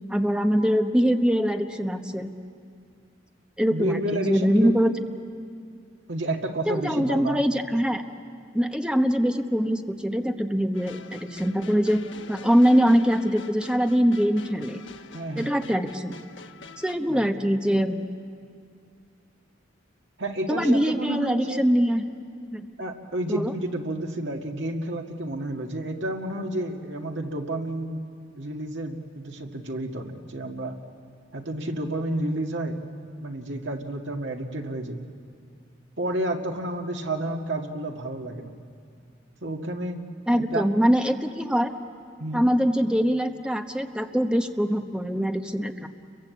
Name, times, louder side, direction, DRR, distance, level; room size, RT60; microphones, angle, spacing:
voice 1, 0.1-2.3 3.6-4.9 6.7-8.0 8.5-12.0 12.3-14.8 15.4-16.1 16.8-18.0 20.5-22.0 22.5-22.7 23.3-23.5 40.3-41.7 42.3-45.9, equal, 5° right, 5 dB, 1.1 m, -23 dB
voice 2, 3.7-4.9 6.1-7.4 15.1-15.7 17.1-17.3 20.2-21.6 22.8-28.1 28.4-30.7 31.3-32.8 33.2-35.0 36.0-38.5 39.4-40.1 40.4-40.7 42.2-42.5, right 1 dB, 70° right, 3 dB, 2.0 m, -30 dB
sound 1, 10.7-17.0, left 4 dB, 80° left, 1.2 m, -46 dB
30.0 x 23.0 x 8.4 m, 2.3 s
head